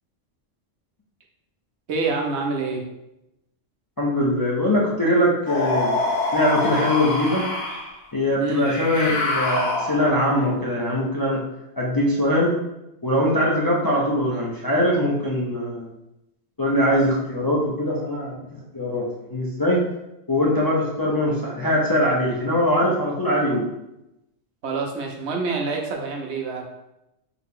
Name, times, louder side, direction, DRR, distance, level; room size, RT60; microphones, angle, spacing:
voice 1, 1.9-2.8 8.4-8.7 24.6-26.7, right 4 dB, 75° right, 1 dB, 1.0 m, -27 dB
voice 2, 4.0-6.0 6.3-7.5 8.1-11.4 11.8-12.5 13.0-15.9 16.6-18.3 18.7-19.9 20.3-23.6, left 1 dB, 30° left, -4 dB, 0.4 m, -22 dB
sound 1, 5.5-7.9 8.6-10.2, left 2 dB, 60° left, 1.0 m, -25 dB
3.9 x 2.8 x 3.6 m, 0.90 s
omnidirectional pair, 1.2 m